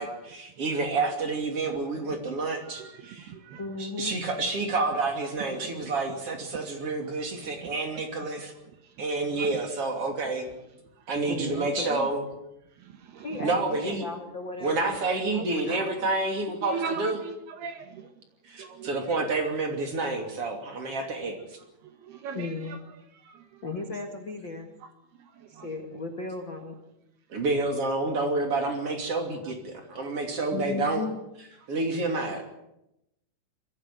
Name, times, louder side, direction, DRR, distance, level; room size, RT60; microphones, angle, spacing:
voice 1, 0.0-3.3 3.8-8.5 9.0-10.5 11.1-12.2 13.4-14.0 14.6-17.2 18.4-21.4 27.3-31.0 31.7-32.4, right 3 dB, 35° right, 3.1 m, -29 dB
voice 2, 2.5-3.7 5.5-5.9 6.3-6.6 7.0-7.1 7.6-8.0 8.8-9.1 9.3-9.6 11.0-11.1 11.5-11.6 12.8-13.5 16.6-18.1 18.5-19.3 21.8-22.8 23.1-23.7 24.8-24.9 25.2-25.7 30.0-30.3 31.9-32.0, right 6 dB, 65° right, 2.9 m, -40 dB
voice 3, 3.6-4.1 11.2-12.1 13.2-16.1 22.3-22.8 23.6-24.7 25.5-26.7 30.5-31.2, left 3 dB, 60° left, 1.2 m, -36 dB
23.0 x 15.5 x 9.4 m
omnidirectional pair, 5.6 m